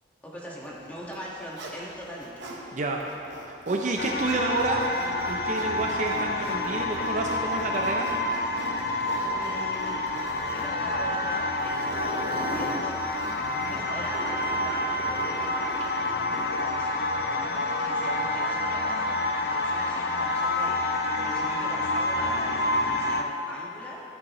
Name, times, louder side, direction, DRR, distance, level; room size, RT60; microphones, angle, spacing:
voice 1, 0.2-2.3 9.2-10.0 10.4-13.0 13.7-24.0, equal, 10° left, -6 dB, 1.7 m, -41 dB
Zipper (clothing), 1.0-2.6 3.0-16.8, right 1 dB, 85° right, 1.2 m, -41 dB
voice 2, 2.7-3.0 3.5-4.8 5.3-8.1, right 2 dB, 45° right, 1 dB, 0.6 m, -29 dB
sound 1, 4.0-23.2, left 2 dB, 60° left, 0.5 m, -28 dB
14.5 x 8.9 x 3.1 m, 2.8 s
head